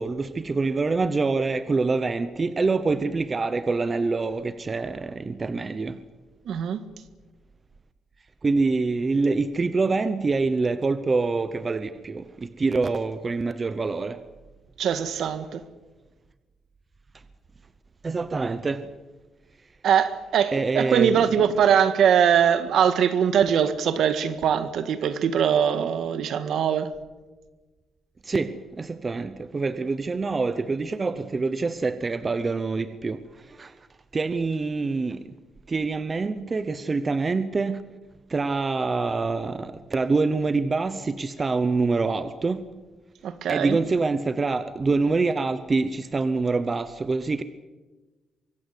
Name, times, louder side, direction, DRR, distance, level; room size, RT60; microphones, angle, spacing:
voice 1, 0.0-6.0 8.4-14.2 18.0-18.9 20.5-21.4 28.3-33.2 33.6-33.7 34.1-35.3 35.7-37.9 38.3-42.7 43.5-47.4, right 3 dB, 20° right, 0.8 m, -25 dB
voice 2, 6.5-6.8 14.8-15.6 19.8-26.9 43.2-43.8, right 8 dB, 60° right, 1.7 m, -22 dB
24.0 x 15.5 x 9.6 m
cardioid pair, 165°, 0 cm